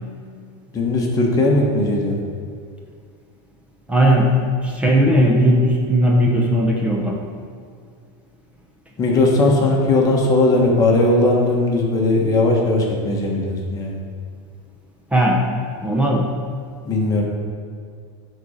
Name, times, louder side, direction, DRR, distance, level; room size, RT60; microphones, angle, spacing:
voice 1, 0.7-2.2 9.0-14.0 16.8-17.2, left 2 dB, 25° left, -1 dB, 1.3 m, -18 dB
voice 2, 3.9-4.3 4.6-7.2 15.1-15.5 15.8-16.3, equal, 10° right, -1 dB, 0.8 m, -17 dB
10.5 x 4.2 x 5.1 m, 2.2 s
supercardioid pair, 155°, 15 cm